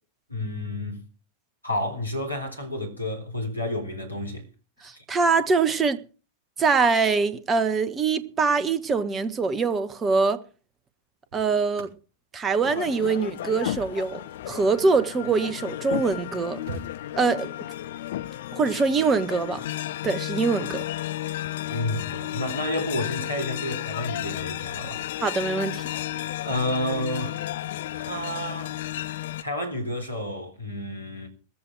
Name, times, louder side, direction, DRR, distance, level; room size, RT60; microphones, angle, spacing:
voice 1, 0.3-1.0 1.6-4.4 4.9-5.0 21.7-25.3 26.1-27.4 27.9-28.8 29.4-31.3, left 1 dB, 85° left, 3.8 m, -30 dB
voice 2, 4.8-6.0 6.6-10.4 11.3-11.9 12.3-14.2 14.5-16.6 17.2-17.5 18.5-19.6 20.0-20.9 25.2-25.8, right 4 dB, 20° right, 1.3 m, -23 dB
sound 1, 10.8-15.4 16.0-16.1 16.3-17.6 19.2-19.5, right 5 dB, 50° right, 5.2 m, -46 dB
sound 2, 12.6-29.4, left 13 dB, 55° left, 0.6 m, -33 dB
15.5 x 14.0 x 4.6 m
figure-of-eight pair, 90°, 0 cm